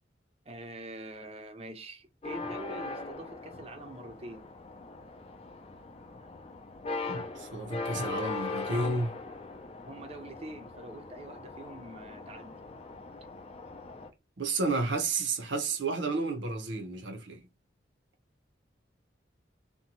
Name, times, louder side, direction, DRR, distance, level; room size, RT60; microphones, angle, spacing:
voice 1, 0.5-4.5 9.8-12.6, right 1 dB, 30° right, 0.5 m, -45 dB
sound 1, 2.2-14.1, left 3 dB, 30° left, 0.4 m, -40 dB
voice 2, 7.1-9.2 14.4-17.4, right 3 dB, 80° right, 0.7 m, -31 dB
2.7 x 2.1 x 2.9 m
head